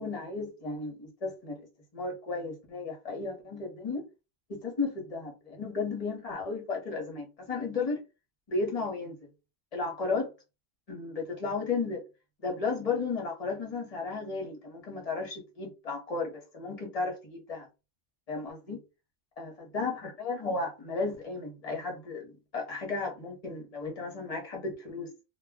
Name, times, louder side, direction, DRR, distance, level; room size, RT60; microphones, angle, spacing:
voice 1, 0.0-1.6 1.9-4.0 4.5-8.0 8.5-9.2 9.7-10.3 10.9-12.0 12.4-17.7 18.3-18.8 19.4-25.1, left 4 dB, 35° left, 0.9 m, -34 dB
2.3 x 2.1 x 3.5 m
omnidirectional pair, 1.1 m